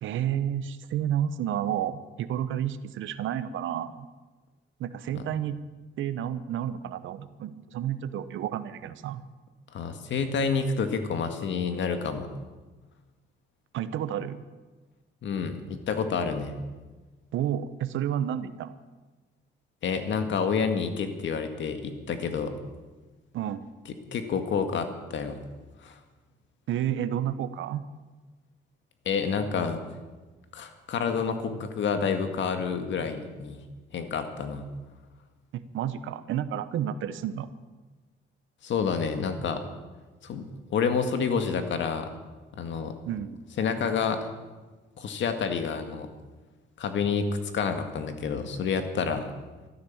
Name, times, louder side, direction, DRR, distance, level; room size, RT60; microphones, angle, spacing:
voice 1, 0.0-4.1 4.8-5.6 6.0-9.2 13.7-14.4 17.3-18.7 23.3-23.6 26.7-27.8 35.5-37.5 43.1-43.4, right 10 dB, 80° right, 13 dB, 0.9 m, -30 dB
voice 2, 9.7-12.3 15.2-16.6 19.8-22.5 24.1-25.4 25.8-26.0 29.1-29.8 30.5-33.6 33.9-34.7 38.6-39.6 40.2-40.5 40.7-42.1 42.5-43.0 43.6-44.3 45.0-46.1 46.8-47.3 47.5-49.3, left 6 dB, 70° left, 7 dB, 1.8 m, -29 dB
13.5 x 13.0 x 7.2 m, 1.3 s
cardioid pair, 90°, 20 cm